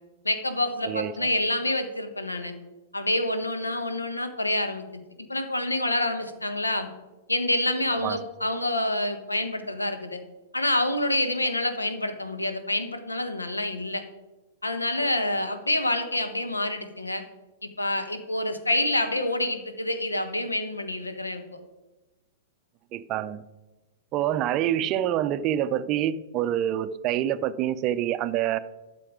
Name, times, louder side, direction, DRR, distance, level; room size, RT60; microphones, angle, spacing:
voice 1, 0.2-2.5 2.9-4.9 5.2-6.9 7.3-10.2 10.5-14.0 14.6-17.2 17.6-21.4, left 1 dB, 80° left, 8 dB, 1.2 m, -27 dB
voice 2, 0.9-1.3 8.0-8.2 22.9-23.4 24.1-28.6, right 11 dB, 35° right, 14 dB, 0.5 m, -26 dB
12.0 x 6.8 x 4.9 m, 1.1 s
figure-of-eight pair, 100°, 0 cm